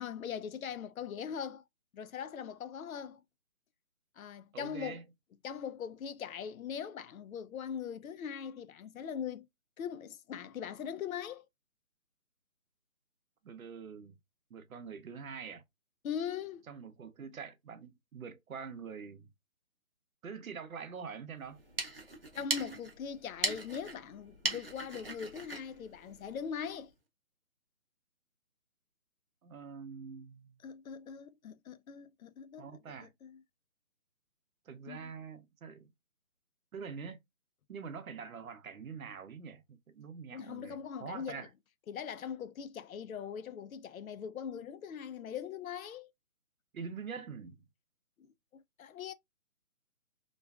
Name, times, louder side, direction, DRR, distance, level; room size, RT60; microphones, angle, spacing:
voice 1, 0.0-1.6 1.9-3.2 4.2-5.0 5.4-9.5 9.8-11.4 16.0-16.6 22.3-26.9 30.6-33.4 34.9-35.1 40.3-41.5 41.9-46.1 48.2-49.1, left 7 dB, 85° left, 0.5 m, -41 dB
voice 2, 4.5-5.0 13.4-14.2 14.5-15.6 16.7-19.3 20.2-21.6 29.4-30.6 32.6-33.1 34.7-35.9 36.7-37.2 37.7-41.5 46.7-47.6, right 6 dB, 80° right, 0.7 m, -45 dB
sound 1, 21.5-26.8, right 2 dB, 45° right, 0.5 m, -39 dB
2.4 x 2.3 x 2.2 m
hypercardioid pair, 180°, 41 cm